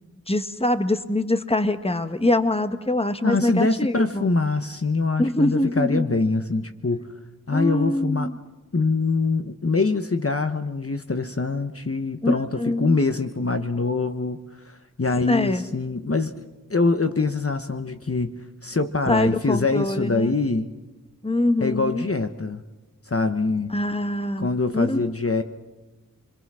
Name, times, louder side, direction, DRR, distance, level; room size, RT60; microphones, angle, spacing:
voice 1, 0.3-4.3 5.2-6.1 7.5-8.4 12.2-13.0 15.1-15.6 19.1-20.3 21.2-22.0 23.7-25.0, left 1 dB, 15° left, 9 dB, 1.4 m, -24 dB
voice 2, 3.2-7.1 7.5-8.3 8.7-14.4 14.7-16.4 16.7-20.7 21.6-22.6 23.1-23.7 24.4-25.4, left 3 dB, 40° left, 8 dB, 1.1 m, -24 dB
28.5 x 22.5 x 6.3 m, 1.1 s
wide cardioid pair, 45°, 34 cm